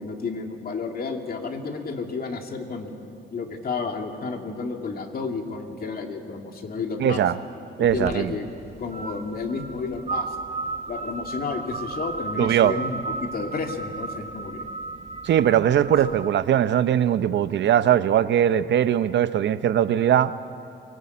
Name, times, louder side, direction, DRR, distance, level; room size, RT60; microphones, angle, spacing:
voice 1, 0.0-7.2 7.8-8.5 8.8-10.3 10.9-14.8 15.7-15.9, left 4 dB, 50° left, 3 dB, 2.4 m, -31 dB
voice 2, 7.0-7.4 7.8-8.3 12.4-12.7 15.2-20.3, right 10 dB, 65° right, 14 dB, 0.8 m, -20 dB
sound 1, 7.8-16.3, right 3 dB, 35° right, 0.9 m, -34 dB
24.0 x 18.5 x 8.5 m, 2.8 s
cardioid pair, 90°, 20 cm